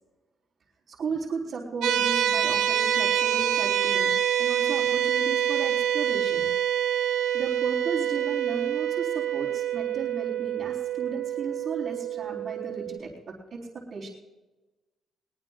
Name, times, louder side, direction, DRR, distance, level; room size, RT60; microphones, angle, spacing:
voice 1, 0.9-6.5 7.3-13.6 13.9-14.1, right 4 dB, 60° right, -7 dB, 3.9 m, -35 dB
sound 1, 1.8-13.0, right 10 dB, 85° right, 0.9 m, -26 dB
22.5 x 18.5 x 2.5 m, 1.1 s
cardioid pair, 90°, 0 cm